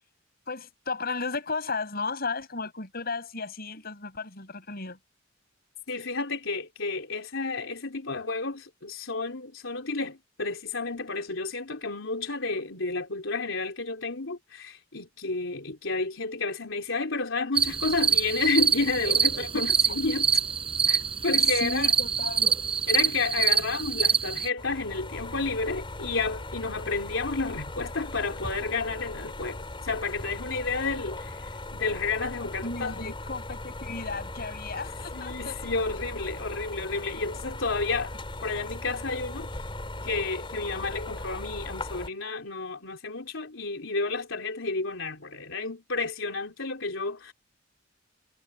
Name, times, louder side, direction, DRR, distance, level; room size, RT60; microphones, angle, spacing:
voice 1, 0.5-5.0 19.5-20.0 21.3-22.6 32.6-35.7, left 4 dB, 50° left, 5.8 m, -34 dB
voice 2, 5.9-20.3 20.9-21.9 22.9-33.1 35.1-38.2 38.4-39.5 40.0-47.3, left 3 dB, 80° left, 3.8 m, -31 dB
sound 1, 17.6-24.5, right 6 dB, 30° right, 5.6 m, -25 dB
sound 2, 24.6-42.1, left 2 dB, 25° left, 4.7 m, -38 dB
head